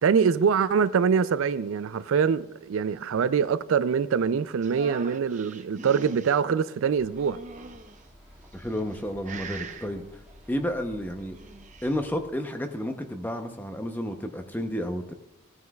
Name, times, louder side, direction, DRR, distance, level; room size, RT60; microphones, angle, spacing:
voice 1, 0.0-7.4, right 6 dB, 75° right, 0.4 m, -24 dB
sound 1, 4.6-6.4 7.2-8.0 8.7-9.0 9.2-9.9 11.2-11.9, right 4 dB, 35° right, 0.7 m, -41 dB
Bird, 6.9-12.4, equal, 5° right, 2.0 m, -52 dB
voice 2, 8.5-10.2 10.5-11.4 11.8-15.1, equal, 10° left, 0.7 m, -31 dB
16.5 x 9.4 x 2.3 m
head